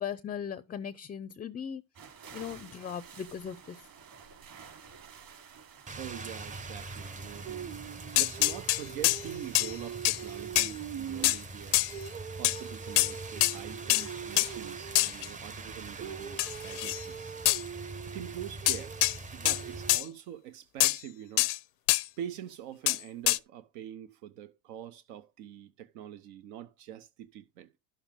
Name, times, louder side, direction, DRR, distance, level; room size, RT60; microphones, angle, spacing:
voice 1, 0.0-1.8 2.3-3.8, left 8 dB, 20° left, 0.5 m, -38 dB
sound 1, 1.9-14.8, right 6 dB, 50° right, 3.6 m, -54 dB
Rain, 5.9-20.0, right 5 dB, 20° right, 0.7 m, -41 dB
voice 2, 6.0-7.8 8.1-11.8 12.4-17.3 18.0-19.0 19.3-21.5 22.2-27.8, right 11 dB, 80° right, 1.0 m, -44 dB
sound 2, 8.2-9.2 9.5-9.7 10.0-10.2 10.6-10.7 11.2-11.4 11.7-11.9 12.4-12.6 13.0-13.1 13.4-13.6 13.9-14.1 14.4-14.5 15.0-15.3 16.4-17.0 17.5-17.6 18.7-19.2 19.5-19.6 19.9-20.0 20.8-21.0 21.4-21.6 21.9-22.1 22.9-23.0 23.3-23.4, left 22 dB, 90° left, 0.6 m, -25 dB
11.0 x 7.1 x 3.6 m
supercardioid pair, 105°, 44 cm